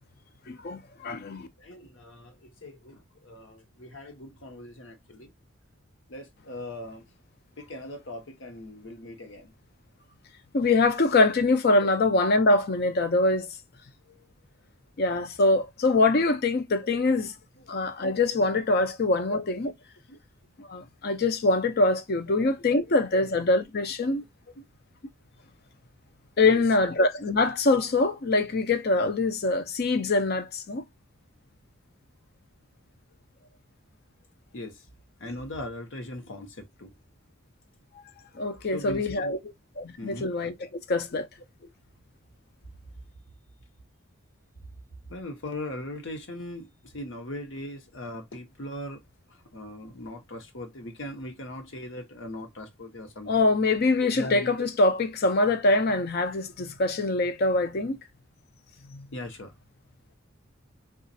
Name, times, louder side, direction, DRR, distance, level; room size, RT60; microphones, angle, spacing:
voice 1, 0.5-1.5 10.5-13.5 15.0-17.3 17.7-19.7 20.6-24.2 26.4-30.8 38.3-39.4 40.0-40.5 40.9-41.3 53.3-58.0, left 2 dB, 50° left, 0.5 m, -24 dB
voice 2, 1.6-5.3 6.1-7.0 7.6-9.5 17.6-17.7 18.8-18.9 20.1-20.2 23.1-23.3 24.6-24.7 26.4-26.6 34.5-34.8 35.2-36.9 38.7-39.5 40.0-40.3 40.7-40.8 41.6-41.7 45.1-49.0 49.3-53.5 54.1-54.7 59.1-59.5, left 1 dB, 65° left, 1.0 m, -39 dB
3.9 x 2.4 x 2.6 m
head